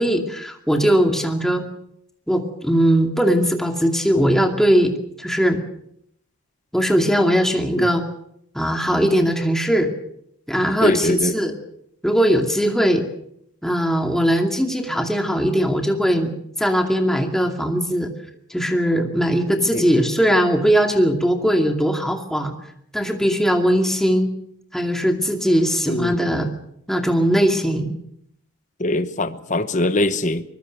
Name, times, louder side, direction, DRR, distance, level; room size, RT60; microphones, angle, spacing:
voice 1, 0.0-1.7 2.3-5.6 6.7-8.0 8.5-9.9 10.5-11.6 12.0-13.0 13.6-16.3 16.6-18.1 18.5-22.5 22.9-24.3 24.7-26.5 26.9-27.9, equal, ahead, 3 dB, 2.4 m, -19 dB
voice 2, 10.8-11.3 19.7-19.8 25.9-26.1 28.8-30.4, left 1 dB, 35° left, 11 dB, 1.0 m, -22 dB
24.5 x 21.5 x 6.6 m, 0.72 s
head